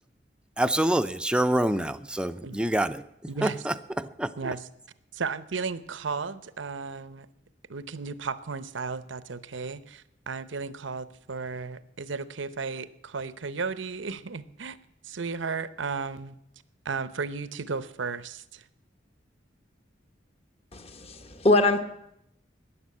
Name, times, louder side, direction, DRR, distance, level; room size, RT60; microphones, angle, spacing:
voice 1, 0.6-3.0 3.4-4.3, right 1 dB, 5° right, 0.5 m, -26 dB
voice 2, 3.3-3.7 4.4-4.7 5.1-7.3 7.7-14.8 15.0-16.4 16.8-18.7, right 4 dB, 90° right, 0.8 m, -34 dB
voice 3, 20.7-21.8, left 2 dB, 35° left, 1.2 m, -23 dB
13.5 x 9.9 x 8.5 m
head